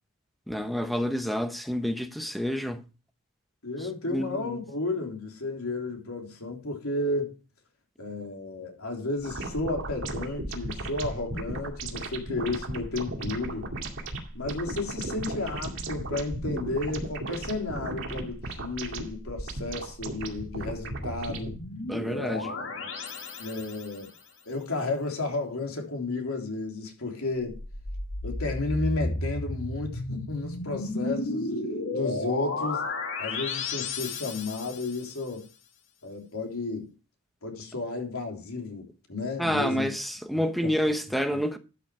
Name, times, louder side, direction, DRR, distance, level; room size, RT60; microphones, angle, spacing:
voice 1, 0.5-2.8 3.8-4.6 21.9-22.5 39.4-41.6, equal, ahead, 1.0 m, -29 dB
voice 2, 3.6-7.3 8.0-13.7 14.3-21.5 22.1-22.4 23.4-24.1 24.4-27.6 28.2-31.6 31.9-32.9 33.2-35.5 36.0-36.9 37.4-39.9 40.3-40.7 41.3-41.4, left 2 dB, 80° left, 3.5 m, -32 dB
sound 1, 9.2-21.6, right 2 dB, 60° right, 2.3 m, -36 dB
sound 2, 20.9-24.1 27.4-35.1, left 2 dB, 60° left, 2.2 m, -33 dB
12.5 x 6.9 x 4.9 m
head